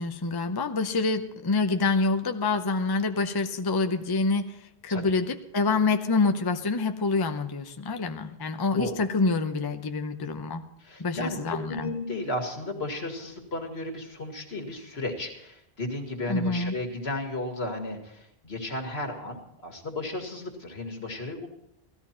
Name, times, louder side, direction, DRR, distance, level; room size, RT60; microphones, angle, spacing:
voice 1, 0.0-4.6 4.8-10.6 11.0-11.9 16.3-16.7, left 3 dB, 25° left, 7 dB, 0.6 m, -26 dB
voice 2, 10.8-21.5, left 2 dB, 80° left, 3 dB, 2.3 m, -34 dB
16.0 x 13.5 x 4.4 m, 0.78 s
omnidirectional pair, 1.1 m